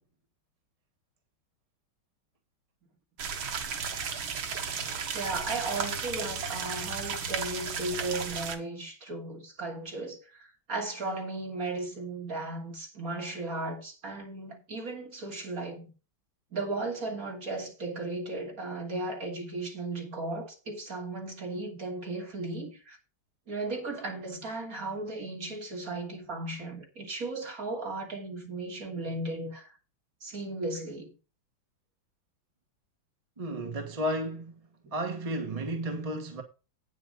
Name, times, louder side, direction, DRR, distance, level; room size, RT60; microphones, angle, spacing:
sound 1, 3.2-8.6, right 6 dB, 85° right, 2.2 m, -34 dB
voice 1, 5.1-15.9 16.5-23.0 23.5-29.7 30.2-31.1 34.8-34.9, right 2 dB, 45° right, 3.3 m, -36 dB
voice 2, 33.4-34.6 34.9-36.4, right 1 dB, 20° right, 1.1 m, -33 dB
9.1 x 7.4 x 5.3 m
omnidirectional pair, 2.2 m